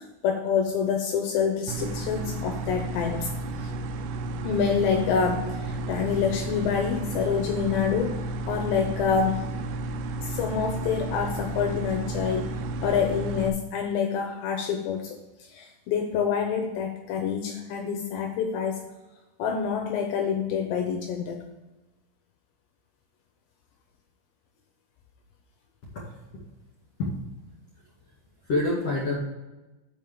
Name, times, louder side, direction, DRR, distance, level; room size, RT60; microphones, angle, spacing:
voice 1, 0.0-3.3 3.6-3.7 4.4-9.5 10.2-18.8 19.4-21.4, left 6 dB, 80° left, 4 dB, 2.5 m, -27 dB
sound 1, 1.7-13.5, right 2 dB, 85° right, 3.2 m, -32 dB
voice 2, 25.9-26.4 27.0-27.1 28.4-29.2, left 2 dB, 45° left, -7 dB, 2.5 m, -27 dB
7.0 x 5.4 x 6.7 m, 1.1 s
omnidirectional pair, 5.8 m